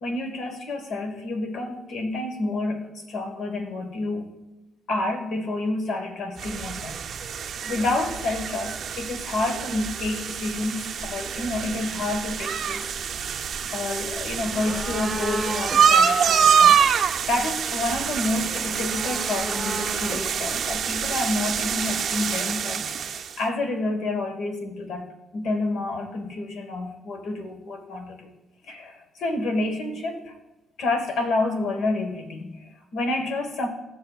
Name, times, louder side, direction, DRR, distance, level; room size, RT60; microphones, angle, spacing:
voice 1, 0.0-4.3 4.9-6.9 7.2-12.8 13.2-13.3 13.7-16.8 17.3-28.3 28.6-30.3 30.8-33.7, left 2 dB, 75° left, 4 dB, 1.4 m, -29 dB
sound 1, 6.4-23.4, right 7 dB, 60° right, 0.5 m, -25 dB
sound 2, 11.0-21.8, right 2 dB, 10° right, 0.8 m, -37 dB
15.5 x 6.6 x 2.4 m, 1.0 s
cardioid pair, 90°, 0 cm